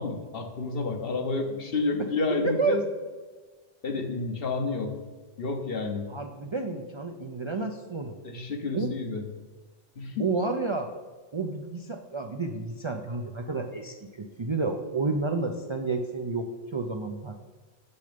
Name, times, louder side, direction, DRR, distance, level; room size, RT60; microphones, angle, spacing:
voice 1, 0.0-2.8 3.8-5.0 5.4-6.1 8.2-9.2 10.0-10.3, left 3 dB, 55° left, 5 dB, 1.1 m, -30 dB
voice 2, 2.4-2.8 6.1-8.1 8.7-8.9 10.2-10.9 11.3-17.4, right 3 dB, 40° right, 4 dB, 0.4 m, -30 dB
6.9 x 6.7 x 5.1 m, 1.3 s
omnidirectional pair, 1.2 m